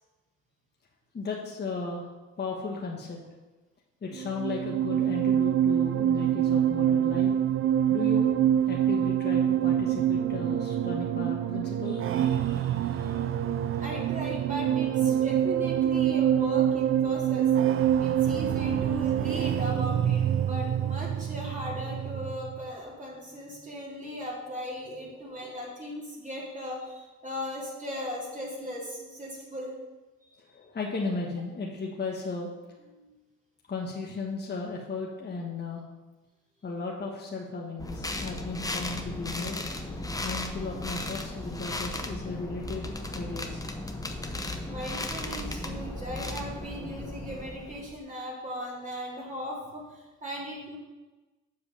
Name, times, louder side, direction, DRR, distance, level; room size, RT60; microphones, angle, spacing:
voice 1, 1.1-2.1 2.4-3.2 4.0-7.3 7.9-8.3 8.7-13.2 25.2-25.6 30.4-32.5 33.7-35.9 36.6-39.6 40.2-43.6, left 3 dB, 35° left, -2 dB, 1.4 m, -36 dB
sound 1, 4.1-22.6, right 10 dB, 45° right, 0.4 m, -26 dB
voice 2, 13.8-17.5 18.0-29.7 32.9-33.1 44.7-50.8, equal, 25° right, -4 dB, 2.8 m, -38 dB
sound 2, 37.8-48.0, left 2 dB, 10° left, 0.9 m, -35 dB
7.4 x 4.9 x 6.9 m, 1.2 s
cardioid pair, 90°, 30 cm